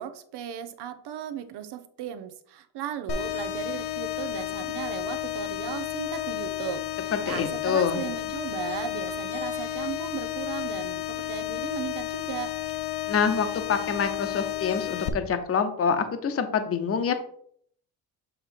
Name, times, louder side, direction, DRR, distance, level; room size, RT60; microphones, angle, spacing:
voice 1, 0.0-12.5, right 9 dB, 80° right, 10 dB, 0.8 m, -36 dB
sound 1, 3.1-15.1, left 12 dB, 75° left, 0.8 m, -32 dB
voice 2, 7.1-8.0 13.1-17.1, left 6 dB, 35° left, 8 dB, 0.8 m, -26 dB
7.2 x 3.2 x 5.0 m, 0.63 s
cardioid pair, 115°, 40 cm